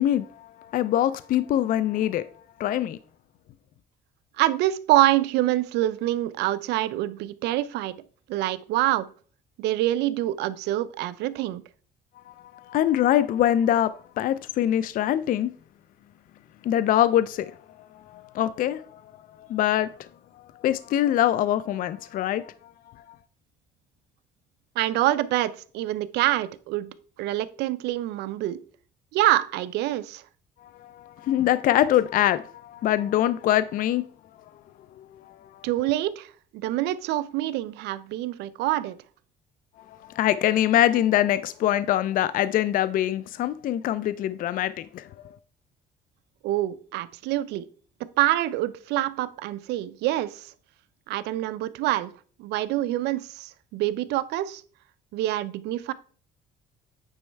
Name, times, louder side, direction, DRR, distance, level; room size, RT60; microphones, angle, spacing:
voice 1, 0.0-2.3 2.6-3.0 12.3-15.5 16.6-17.5 18.1-19.0 19.4-20.1 20.4-22.7 23.1-23.2 30.6-34.1 35.0-35.7 39.9-45.4, left 12 dB, 55° left, 0.4 m, -24 dB
voice 2, 4.4-7.9 8.3-9.1 9.6-11.6 24.8-26.9 27.2-28.6 29.1-30.2 35.6-36.3 36.6-39.0 46.4-47.7 48.2-50.5 51.1-52.1 52.4-54.6 55.1-55.9, right 15 dB, 85° right, 0.5 m, -26 dB
9.0 x 3.1 x 4.5 m
cardioid pair, 110°, 17 cm